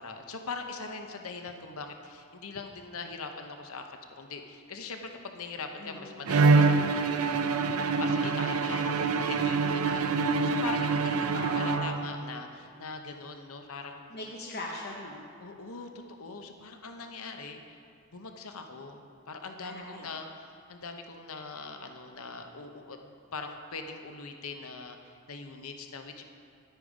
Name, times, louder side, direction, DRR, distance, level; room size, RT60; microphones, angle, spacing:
voice 1, 0.0-14.0 15.4-17.8 18.1-26.2, left 4 dB, 75° left, 5 dB, 0.8 m, -42 dB
voice 2, 5.8-6.3 11.3-12.1 14.1-15.2 19.6-20.1, left 1 dB, 45° left, -2 dB, 0.9 m, -40 dB
Bowed string instrument, 6.3-12.3, right 4 dB, 80° right, 0.6 m, -25 dB
10.5 x 9.0 x 5.0 m, 2.3 s
head